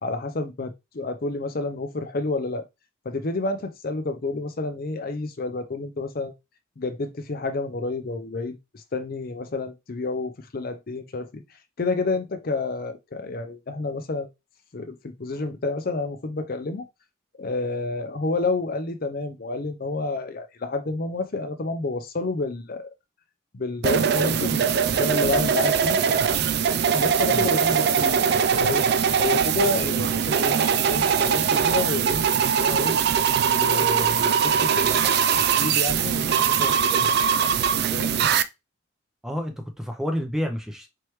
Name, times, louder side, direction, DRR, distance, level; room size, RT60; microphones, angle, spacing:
voice 1, 0.0-2.7 3.1-6.3 6.8-11.4 11.8-14.3 14.7-16.9 17.4-22.9 23.5-26.0 26.9-28.8 29.2-32.9 33.4-35.1 35.6-37.2 37.9-38.2, left 3 dB, 45° left, 0.5 m, -29 dB
sound 1, 23.8-38.4, right 7 dB, 50° right, 0.3 m, -21 dB
voice 2, 39.2-40.9, equal, ahead, 0.6 m, -29 dB
4.4 x 3.2 x 3.1 m
head